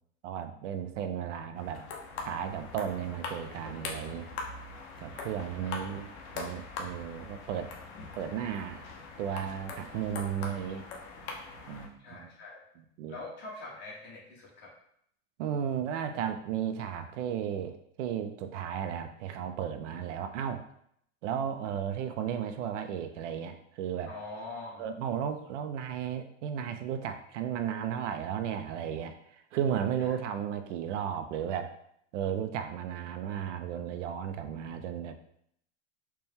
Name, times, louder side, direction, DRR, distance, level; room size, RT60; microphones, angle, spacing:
voice 1, 0.2-1.8 2.2-4.3 5.0-7.7 8.2-8.8 9.2-10.9 11.7-12.3 13.0-13.2 15.4-20.6 21.2-24.1 24.8-31.8 32.1-35.1, right 8 dB, 75° right, 8 dB, 0.5 m, -34 dB
sound 1, 1.6-11.9, left 4 dB, 55° left, 0.8 m, -42 dB
voice 2, 12.0-12.6 13.1-14.7 24.1-24.9 30.0-30.2, left 2 dB, 30° left, -5 dB, 1.2 m, -43 dB
4.4 x 2.2 x 3.5 m, 0.70 s
supercardioid pair, 165°, 37 cm